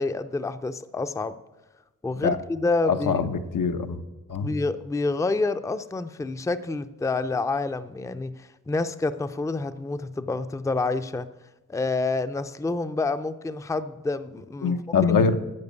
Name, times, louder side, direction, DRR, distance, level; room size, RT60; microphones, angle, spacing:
voice 1, 0.0-1.3 2.0-3.3 4.4-11.3 11.7-14.8, left 3 dB, 10° left, 11 dB, 0.4 m, -28 dB
voice 2, 2.8-4.0 4.3-4.5 14.6-15.4, left 5 dB, 85° left, 7 dB, 0.9 m, -23 dB
11.0 x 7.4 x 8.2 m, 1.1 s
wide cardioid pair, 110°, 32 cm